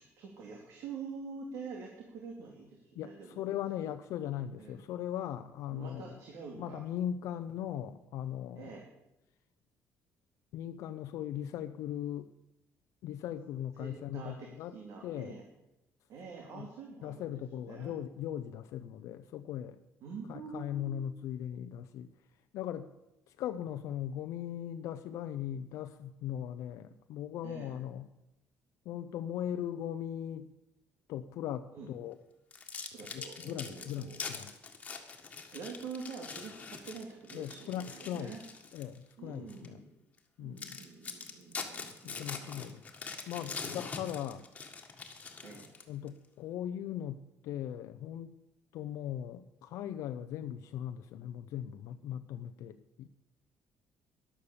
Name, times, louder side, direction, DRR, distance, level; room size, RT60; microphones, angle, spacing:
voice 1, 0.0-3.5 4.6-4.8 5.7-6.8 8.5-8.8 13.8-15.4 16.1-17.9 20.0-21.1 27.4-27.8 31.7-31.9 32.9-34.2 35.5-38.4 39.2-40.0 40.4-42.7 45.4-45.7, right 5 dB, 70° right, 0 dB, 2.8 m, -46 dB
voice 2, 3.0-6.2 6.6-8.8 10.5-12.3 13.0-14.7 15.0-15.4 16.5-16.7 17.0-19.8 20.3-22.1 22.5-22.9 23.4-28.1 28.9-30.5 31.1-32.2 33.1-34.5 37.3-38.3 38.7-39.8 40.4-40.8 42.0-42.8 43.3-44.4 45.9-48.3 48.7-53.1, left 10 dB, 75° left, 8 dB, 0.6 m, -39 dB
sound 1, 32.5-39.0 39.5-39.7 40.2-40.3 40.6-46.1, left 5 dB, 25° left, 1.8 m, -43 dB
13.5 x 11.5 x 7.1 m, 0.91 s
cardioid pair, 150°, 5 cm